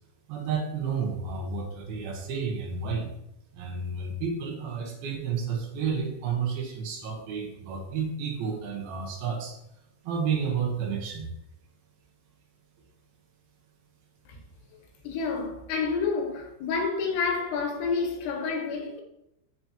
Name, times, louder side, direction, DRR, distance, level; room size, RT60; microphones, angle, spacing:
voice 1, 0.3-3.1 3.5-9.6 10.0-11.3, right 6 dB, 70° right, 3.0 m, -31 dB
voice 2, 15.0-19.0, left 5 dB, 85° left, 3.2 m, -29 dB
13.0 x 4.4 x 2.9 m
omnidirectional pair, 4.6 m